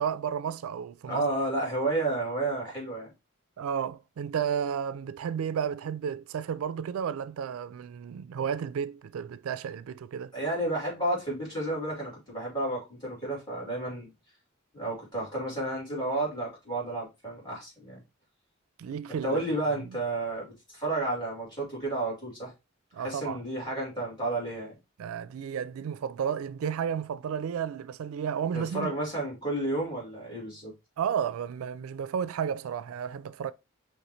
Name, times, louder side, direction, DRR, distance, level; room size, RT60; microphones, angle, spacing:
voice 1, 0.0-1.2 3.6-10.3 18.8-19.4 19.8-19.9 22.9-23.4 25.0-28.9 31.0-33.5, right 8 dB, 85° right, 0.3 m, -32 dB
voice 2, 1.1-3.1 10.3-14.1 14.7-18.0 19.2-22.5 23.0-24.8 28.5-30.7, right 2 dB, 20° left, 2.8 m, -31 dB
5.6 x 3.0 x 3.0 m
head